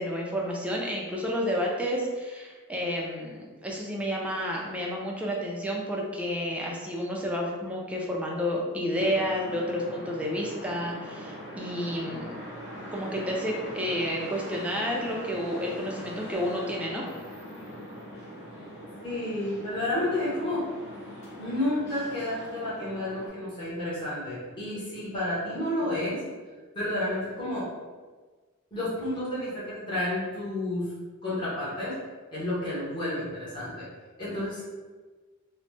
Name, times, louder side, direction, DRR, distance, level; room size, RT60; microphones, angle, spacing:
voice 1, 0.0-12.3 12.9-17.0 26.0-26.2, equal, 5° right, -2 dB, 0.4 m, -30 dB
sound 1, 8.9-23.3, equal, 50° left, 1.0 m, -42 dB
voice 2, 19.0-20.6 21.4-26.2 26.7-27.7 28.7-30.9 31.2-31.9 32.3-33.9 34.2-34.6, left 1 dB, 20° left, -11 dB, 0.9 m, -31 dB
2.9 x 2.0 x 3.2 m, 1.4 s
head